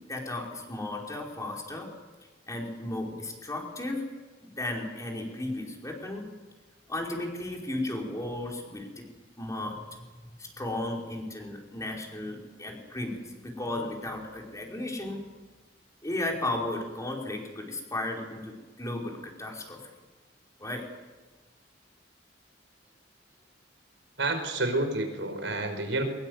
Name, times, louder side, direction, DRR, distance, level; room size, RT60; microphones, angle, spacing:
voice 1, 0.1-1.9 2.5-4.0 4.4-6.3 6.9-8.9 9.4-9.8 10.4-15.2 16.0-19.9 20.6-20.8, left 1 dB, 15° left, 0 dB, 5.2 m, -34 dB
voice 2, 24.2-26.0, right 2 dB, 85° right, 7 dB, 5.2 m, -29 dB
24.0 x 22.0 x 8.1 m, 1.2 s
head